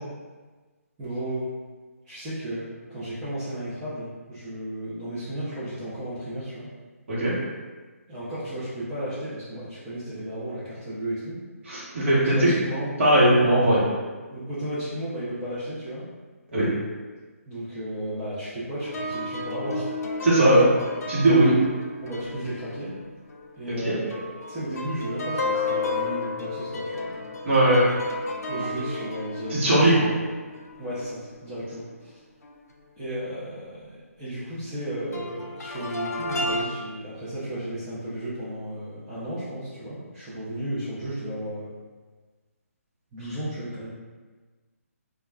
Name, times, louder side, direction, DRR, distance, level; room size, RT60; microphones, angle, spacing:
voice 1, 1.0-1.5 2.1-6.7 8.1-11.4 11.9-12.9 14.3-16.1 17.5-19.9 20.6-20.9 22.0-22.9 23.6-27.2 28.5-30.3 30.8-32.1 33.0-41.7 43.1-43.9, right 1 dB, 10° right, -14 dB, 0.5 m, -34 dB
voice 2, 11.7-12.5 13.0-13.8 16.5-16.7 20.2-20.7 21.1-21.5 23.8-23.9 27.4-27.8 29.5-30.1, right 1 dB, 50° right, -8 dB, 1.0 m, -19 dB
sound 1, 18.8-23.8 24.1-31.8 32.4-32.6 35.1-36.6, left 2 dB, 85° left, 0.4 m, -33 dB
2.2 x 2.1 x 3.4 m, 1.3 s
hypercardioid pair, 160°, 8 cm